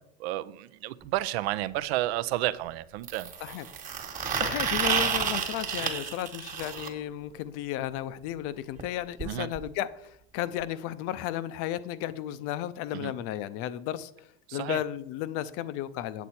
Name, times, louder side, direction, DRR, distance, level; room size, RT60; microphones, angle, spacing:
voice 1, 0.2-3.3 9.3-9.5 12.9-13.1 14.5-14.8, right 15 dB, 65° right, 0.6 m, -31 dB
sound 1, 1.0-1.1 3.0-6.9 8.8-8.9 9.2-9.3 9.6-9.7 10.6-10.7, right 6 dB, 25° right, 1.5 m, -30 dB
voice 2, 4.4-16.3, left 12 dB, 45° left, 0.6 m, -34 dB
8.2 x 8.1 x 4.3 m
supercardioid pair, 140°, 34 cm